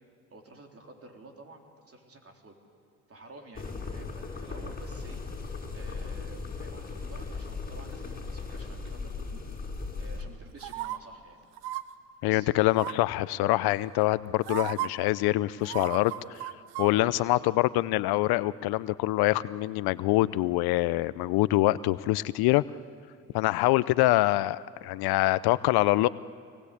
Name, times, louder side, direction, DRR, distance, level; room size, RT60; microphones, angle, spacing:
voice 1, 0.3-2.5 3.1-5.2 5.7-11.4 12.2-12.5 16.8-17.5, right 2 dB, 35° right, 3 dB, 3.8 m, -50 dB
sound 1, 3.5-10.2, left 4 dB, 20° left, 5.6 m, -37 dB
sound 2, 10.6-11.0 11.6-11.8 12.7-13.1 14.0-14.1 14.5-14.9 15.6-16.9 17.2-17.3, right 15 dB, 75° right, 1.1 m, -34 dB
voice 2, 12.2-16.4 16.8-22.6 23.3-26.1, left 18 dB, 65° left, 18 dB, 0.7 m, -25 dB
26.0 x 19.5 x 8.4 m, 2.3 s
hypercardioid pair, 70°, 41 cm